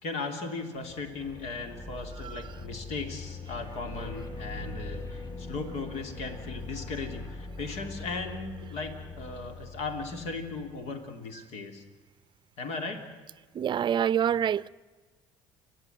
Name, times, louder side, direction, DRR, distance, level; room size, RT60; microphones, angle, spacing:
voice 1, 0.0-11.8 12.6-13.1, left 3 dB, 70° left, 3.0 m, -37 dB
sound 1, 0.7-10.9, left 3 dB, 25° left, 3.7 m, -42 dB
voice 2, 13.5-14.7, right 9 dB, 40° right, 0.6 m, -26 dB
29.5 x 11.5 x 9.3 m
supercardioid pair, 90°, 12 cm